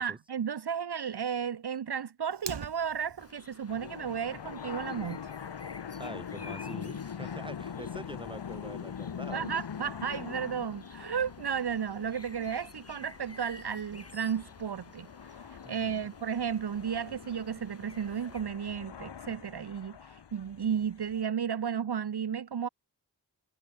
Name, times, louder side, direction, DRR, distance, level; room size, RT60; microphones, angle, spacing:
voice 1, 0.0-5.3 9.3-15.1 15.7-22.7, right 7 dB, 70° right, 0.9 m, -33 dB
Fire, 2.3-3.3, right 6 dB, 85° right, 2.2 m, -41 dB
sound 1, 3.2-18.4, left 3 dB, 35° left, 5.6 m, -53 dB
sound 2, 3.7-21.2, left 7 dB, 80° left, 1.2 m, -43 dB
voice 2, 6.0-9.5 15.6-16.1, right 1 dB, 10° right, 4.7 m, -45 dB
wide cardioid pair, 90°, 41 cm